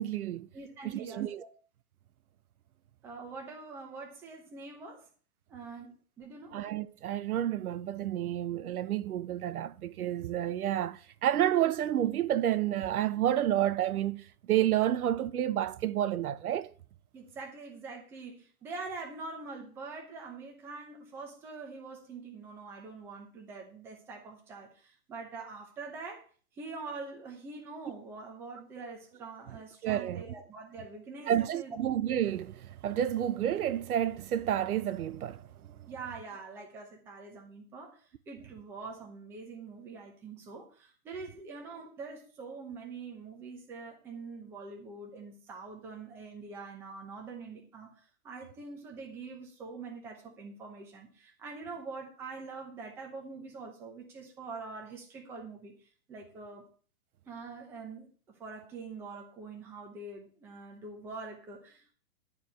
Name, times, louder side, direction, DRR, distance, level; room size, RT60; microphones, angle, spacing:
voice 1, 0.0-0.5 0.9-1.4 6.5-16.7 29.8-30.2 31.3-35.8, right 11 dB, 75° right, 0.9 m, -30 dB
voice 2, 0.5-1.5 3.0-5.1 5.5-6.6 17.1-26.2 26.5-31.8 35.9-56.7 57.3-61.9, right 4 dB, 5° right, 0.8 m, -44 dB
11.0 x 4.9 x 8.2 m
hypercardioid pair, 175°, 44 cm